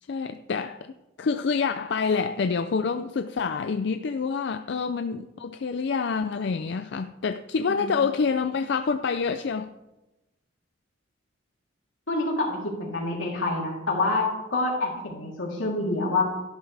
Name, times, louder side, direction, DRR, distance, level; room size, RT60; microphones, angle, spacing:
voice 1, 0.1-9.7, left 5 dB, 60° left, 0.4 m, -27 dB
voice 2, 12.1-16.2, left 2 dB, 85° left, 3.2 m, -27 dB
13.5 x 12.0 x 3.4 m
head